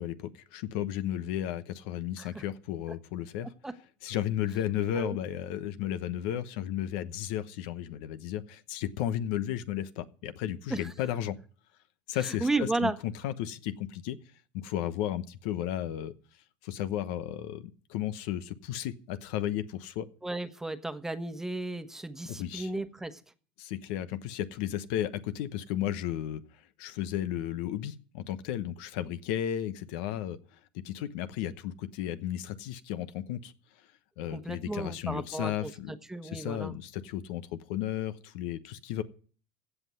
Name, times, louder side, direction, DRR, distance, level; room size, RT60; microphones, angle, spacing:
voice 1, 0.0-3.5 4.0-11.4 12.1-14.2 14.5-16.1 16.6-20.1 22.2-22.7 23.6-26.4 26.8-30.4 30.7-33.5 34.2-35.9 36.2-39.0, left 11 dB, 75° left, 12 dB, 0.9 m, -34 dB
voice 2, 12.2-13.0 20.2-23.2 34.3-36.8, right 2 dB, 10° right, 9 dB, 1.3 m, -34 dB
16.0 x 5.8 x 9.3 m, 0.42 s
supercardioid pair, 95°, 5 cm